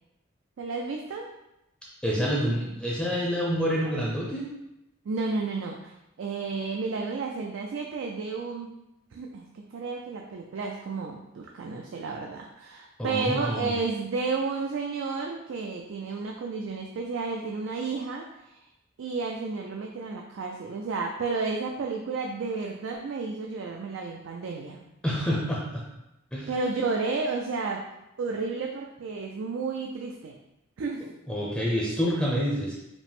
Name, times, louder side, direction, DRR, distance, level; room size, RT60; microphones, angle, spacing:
voice 1, 0.6-1.3 5.1-8.7 9.1-18.5 19.0-24.8 26.5-27.9 28.2-30.4 30.8-31.1, right 4 dB, 65° right, 1 dB, 0.4 m, -32 dB
voice 2, 2.0-4.5 13.0-13.7 25.0-25.8 26.3-26.5 31.3-32.7, equal, 5° left, -5 dB, 0.5 m, -27 dB
5.0 x 2.0 x 3.4 m, 0.90 s
head